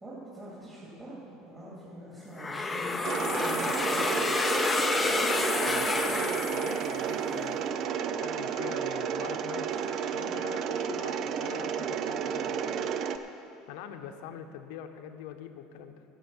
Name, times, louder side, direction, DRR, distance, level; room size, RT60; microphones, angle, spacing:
voice 1, 0.0-4.3, equal, 15° right, -9 dB, 2.9 m, -44 dB
sound 1, 2.4-7.3, left 3 dB, 10° left, 0.6 m, -29 dB
Mechanisms, 3.0-13.2, right 7 dB, 45° right, 0.5 m, -32 dB
voice 2, 5.0-7.6 8.2-9.7 10.1-12.6 13.7-16.0, left 9 dB, 75° left, 7 dB, 0.9 m, -43 dB
13.0 x 7.3 x 7.2 m, 2.8 s
cardioid pair, 145°, 0 cm